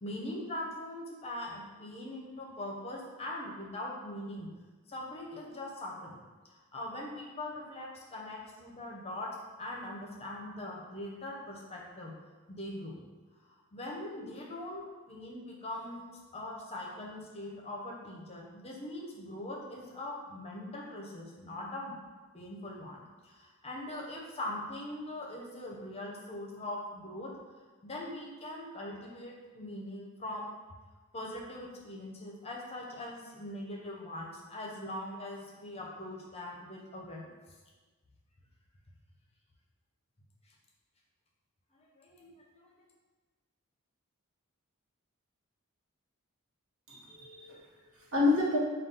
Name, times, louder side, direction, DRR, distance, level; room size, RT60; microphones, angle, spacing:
voice 1, 0.0-4.5 4.9-6.2 6.5-9.3 9.6-12.1 12.5-13.1 13.5-22.0 22.3-27.3 27.8-30.5 31.1-37.3 41.8-42.9, left 1 dB, 30° left, -2 dB, 0.6 m, -41 dB
voice 2, 46.9-48.6, left 3 dB, 65° right, -4 dB, 1.1 m, -30 dB
5.1 x 2.3 x 3.8 m, 1.3 s
head